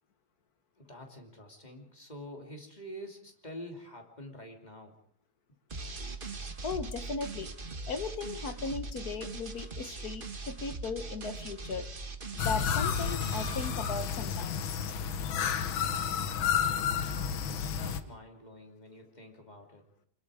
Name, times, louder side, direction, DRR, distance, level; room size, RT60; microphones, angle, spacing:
voice 1, 0.8-4.9 16.5-16.9 17.8-19.8, equal, 20° left, 2 dB, 2.9 m, -47 dB
sound 1, 5.7-13.7, right 3 dB, 30° right, 1.3 m, -41 dB
voice 2, 6.6-7.5 7.9-11.9 12.4-14.6, left 5 dB, 55° left, 10 dB, 1.5 m, -37 dB
sound 2, 12.4-18.0, left 7 dB, 75° left, 1.9 m, -31 dB
26.5 x 21.5 x 4.9 m, 0.65 s
omnidirectional pair, 2.2 m